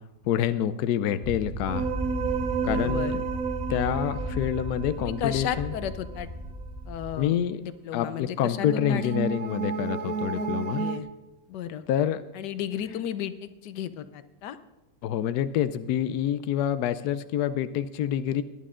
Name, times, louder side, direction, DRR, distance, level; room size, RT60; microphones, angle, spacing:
voice 1, 0.2-1.9 2.6-3.2 3.7-5.7 7.2-7.6 7.9-10.9 11.9-12.2 15.0-18.4, left 10 dB, 75° left, 13 dB, 1.1 m, -27 dB
sound 1, 1.2-7.2, equal, 15° left, 2.1 m, -35 dB
sound 2, 1.7-6.2 8.5-11.0, right 5 dB, 60° right, 1.3 m, -31 dB
voice 2, 2.6-3.2 5.0-6.3 6.9-9.1 10.3-10.5 10.8-11.1 11.5-11.8 12.3-14.6, left 9 dB, 90° left, 12 dB, 1.4 m, -34 dB
19.0 x 11.5 x 3.7 m, 1.0 s
omnidirectional pair, 1.8 m